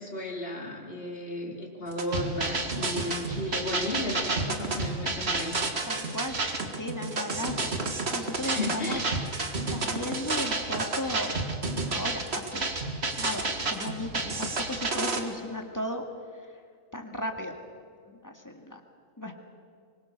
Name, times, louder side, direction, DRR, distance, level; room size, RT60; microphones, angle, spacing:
voice 1, 0.0-5.6 8.4-9.1, left 1 dB, 45° left, 1 dB, 3.4 m, -34 dB
sound 1, 1.9-15.2, right 3 dB, 50° right, 2.1 m, -30 dB
voice 2, 5.9-7.8 8.1-9.0 9.6-11.3 11.9-12.7 13.2-16.1 16.3-16.6 16.9-17.6 18.1-18.8 19.2-19.3, left 1 dB, 15° left, 3 dB, 2.0 m, -36 dB
24.5 x 21.5 x 6.6 m, 2.3 s
omnidirectional pair, 1.4 m